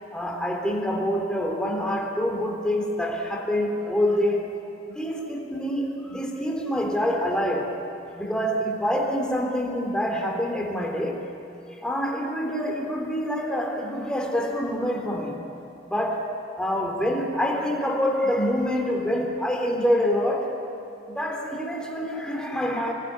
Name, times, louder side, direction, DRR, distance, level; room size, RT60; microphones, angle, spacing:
voice 1, 0.1-7.8 8.1-11.3 11.8-15.4 15.8-20.6 21.1-22.9, equal, 5° left, 1 dB, 3.4 m, -26 dB
27.0 x 21.0 x 9.7 m, 3.0 s
head